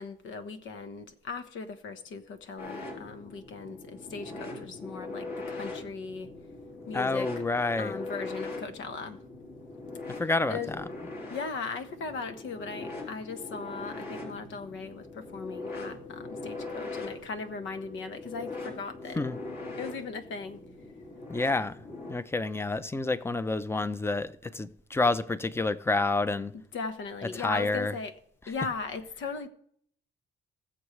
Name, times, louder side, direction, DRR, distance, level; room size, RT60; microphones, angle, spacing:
voice 1, 0.0-6.3 6.9-7.3 7.8-9.2 10.1-10.2 10.5-10.7 11.3-19.2 19.8-20.6 26.7-28.1 28.5-29.5, left 4 dB, 75° left, 1.3 m, -38 dB
sound 1, 2.6-22.1, left 3 dB, 55° left, 3.9 m, -41 dB
voice 2, 6.9-7.9 10.2-10.8 19.2-19.4 21.3-21.8 22.1-26.5 27.4-27.9, left 3 dB, 10° left, 0.7 m, -29 dB
20.0 x 7.2 x 3.2 m
cardioid pair, 90°, 20 cm